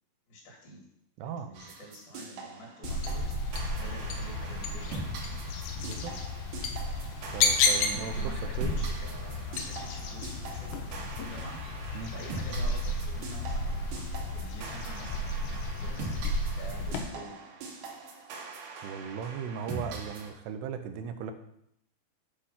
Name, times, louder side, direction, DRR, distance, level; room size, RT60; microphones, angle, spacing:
voice 1, 0.3-0.9 1.2-5.4 7.9-11.6 12.1-16.1 16.6-17.4, equal, 60° left, -1 dB, 4.1 m, -47 dB
voice 2, 1.2-1.5 5.8-6.1 7.3-8.1 8.6-8.7 11.9-12.1 18.8-21.3, right 7 dB, 80° right, 8 dB, 2.7 m, -37 dB
sound 1, 1.5-20.3, right 3 dB, 65° right, 2.3 m, -42 dB
sound 2, 2.8-17.0, left 3 dB, 90° left, 3.1 m, -32 dB
8.8 x 4.9 x 5.8 m, 0.74 s
omnidirectional pair, 4.8 m